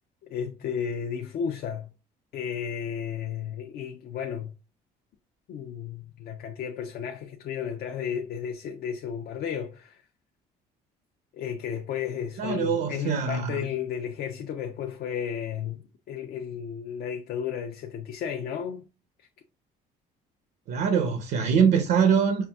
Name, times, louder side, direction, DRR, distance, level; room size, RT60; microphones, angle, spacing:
voice 1, 0.3-1.9 2.3-4.5 5.5-10.0 11.3-15.8 16.1-18.8, left 8 dB, 65° left, 0.6 m, -33 dB
voice 2, 12.4-13.6 20.7-22.5, right 6 dB, 70° right, 0.7 m, -23 dB
5.6 x 2.5 x 2.3 m
cardioid pair, 110°, 17 cm